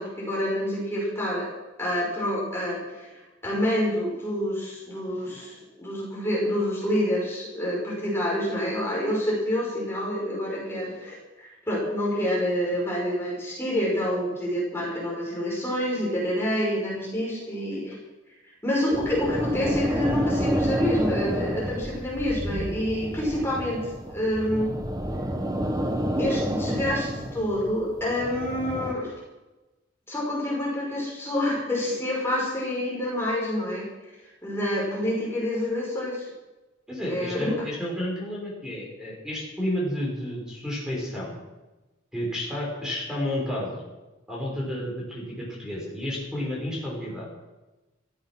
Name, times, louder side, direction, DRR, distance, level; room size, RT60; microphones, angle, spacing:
voice 1, 0.0-1.5 1.8-3.1 3.4-18.0 18.6-23.8 24.1-24.7 26.2-29.1 30.1-33.9 34.4-36.3 37.1-37.5, left 1 dB, 15° left, -4 dB, 5.7 m, -27 dB
sound 1, 18.9-28.9, equal, 20° right, 1.3 m, -29 dB
voice 2, 36.9-41.3 42.1-43.8 44.3-47.3, left 1 dB, 5° right, -4 dB, 5.7 m, -31 dB
15.0 x 14.5 x 6.2 m, 1.1 s
head